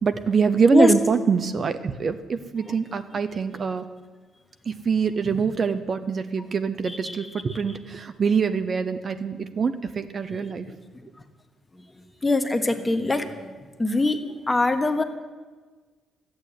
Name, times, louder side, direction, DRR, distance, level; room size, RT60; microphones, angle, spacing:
voice 1, 0.0-3.9 4.7-10.7, right 5 dB, 45° right, 10 dB, 0.8 m, -24 dB
voice 2, 12.2-13.5 13.8-14.2 14.5-15.0, left 2 dB, 20° left, 7 dB, 1.3 m, -22 dB
13.0 x 8.8 x 9.6 m, 1.4 s
cardioid pair, 90°, 0 cm